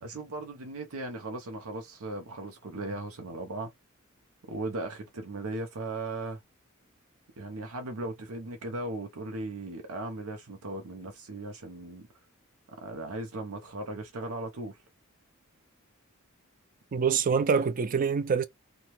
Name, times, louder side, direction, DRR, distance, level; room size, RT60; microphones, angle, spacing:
voice 1, 0.0-3.7 4.5-6.4 7.4-12.1 12.8-14.8, right 2 dB, 90° right, 0.7 m, -37 dB
voice 2, 16.9-18.4, right 6 dB, 40° right, 0.4 m, -25 dB
2.7 x 2.2 x 3.0 m
head